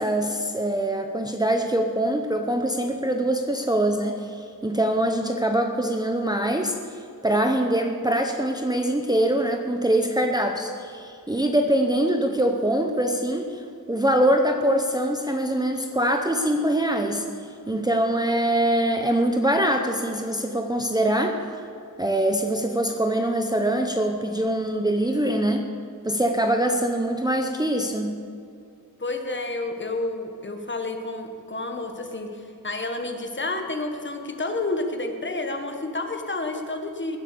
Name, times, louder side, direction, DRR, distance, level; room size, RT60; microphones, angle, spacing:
voice 1, 0.0-13.6 13.9-17.2 17.7-21.4 22.0-25.6 26.0-28.1, right 1 dB, 10° right, 3 dB, 0.8 m, -23 dB
voice 2, 29.0-37.2, left 2 dB, 30° left, 4 dB, 1.4 m, -30 dB
20.5 x 8.1 x 7.0 m, 2.5 s
wide cardioid pair, 155°, 38 cm